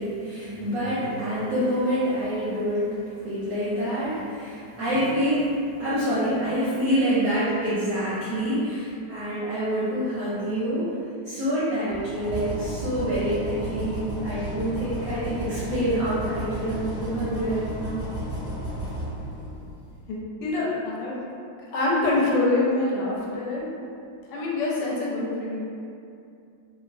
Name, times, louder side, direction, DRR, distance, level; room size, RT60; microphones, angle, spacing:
voice 1, 0.0-5.5 5.8-10.9 11.3-18.0, equal, 70° right, -11 dB, 0.8 m, -26 dB
sound 1, 11.9-19.9, right 1 dB, 15° left, 0.6 m, -33 dB
voice 2, 20.1-21.2 21.7-23.6 24.3-25.6, left 2 dB, 75° left, -4 dB, 1.2 m, -25 dB
3.0 x 2.0 x 2.5 m, 2.5 s
omnidirectional pair, 2.0 m